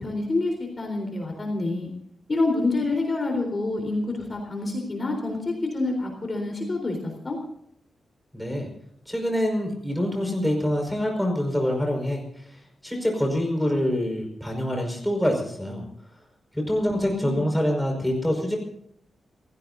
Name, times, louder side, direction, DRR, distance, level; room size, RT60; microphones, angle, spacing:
voice 1, 0.0-1.9 2.3-7.0 7.2-7.4 16.8-17.4, left 2 dB, 30° left, 2 dB, 3.9 m, -27 dB
voice 2, 8.3-8.7 9.1-12.4 12.8-15.8 16.5-18.6, equal, ahead, 1 dB, 5.2 m, -25 dB
28.5 x 16.5 x 2.7 m, 0.71 s
wide cardioid pair, 165°, 0 cm